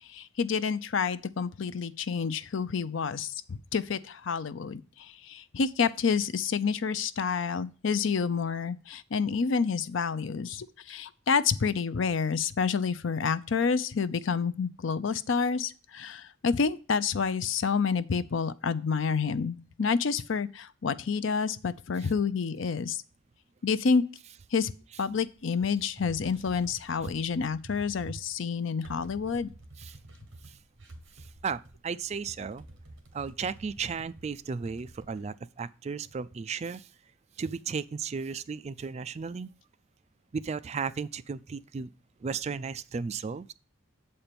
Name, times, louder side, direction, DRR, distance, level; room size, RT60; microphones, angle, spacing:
voice 1, 0.1-23.0 23.6-24.0 24.5-24.7 25.0-29.5, left 5 dB, 65° left, 0.5 m, -29 dB
sound 1, 25.1-35.2, right 1 dB, 60° right, 1.5 m, -50 dB
voice 2, 31.4-32.6 33.1-36.9 37.4-39.5 40.3-41.9 42.2-43.5, right 5 dB, 30° right, 0.3 m, -35 dB
7.6 x 4.4 x 6.8 m
head